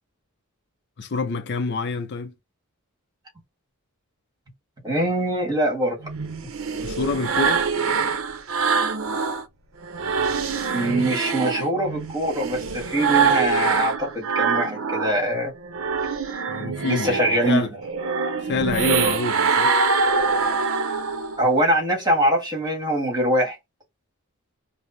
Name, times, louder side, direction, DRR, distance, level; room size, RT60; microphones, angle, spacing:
voice 1, 1.0-2.3 6.8-7.7 16.5-17.7 18.4-19.7, left 4 dB, 50° left, 0.5 m, -27 dB
voice 2, 4.8-6.1 10.7-15.5 16.8-17.6 21.4-23.6, right 1 dB, 20° right, 1.5 m, -23 dB
sound 1, 6.0-9.4 9.8-15.2 15.6-21.4, right 5 dB, 65° right, 0.6 m, -24 dB
4.9 x 2.0 x 2.6 m
head